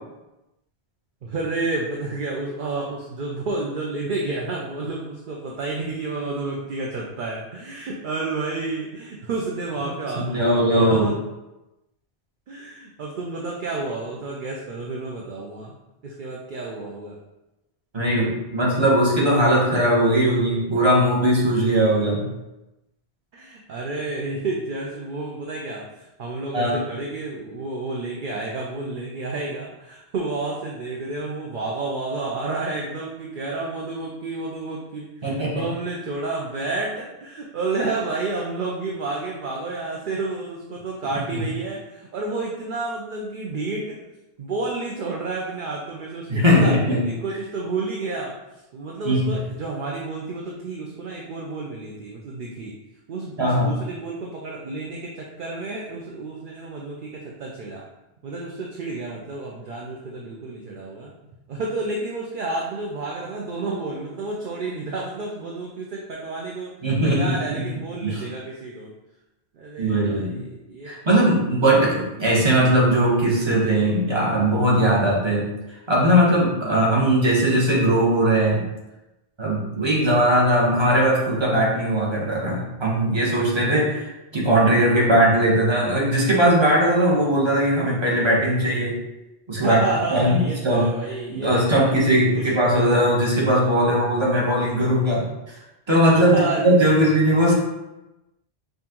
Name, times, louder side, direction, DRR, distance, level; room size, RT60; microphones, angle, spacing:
voice 1, 1.2-11.2 12.5-15.8 16.0-17.2 23.3-25.9 26.2-44.0 44.4-46.7 47.0-48.4 48.7-52.7 53.1-57.8 58.2-61.1 61.5-66.7 67.0-68.9 69.5-70.9 89.6-91.9 92.3-92.5 96.2-96.8, right 3 dB, 55° right, -2 dB, 0.7 m, -30 dB
voice 2, 10.2-11.1 17.9-22.2 26.5-26.8 35.2-35.6 41.3-41.4 46.3-47.1 49.0-49.2 53.4-53.7 66.8-67.4 68.0-68.2 69.8-70.4 70.8-75.5 75.9-78.7 79.4-89.0 89.5-89.8 90.1-90.9 91.3-95.6 95.9-97.5, right 1 dB, 25° right, -5 dB, 1.1 m, -19 dB
5.6 x 2.6 x 2.9 m, 0.98 s
omnidirectional pair, 1.1 m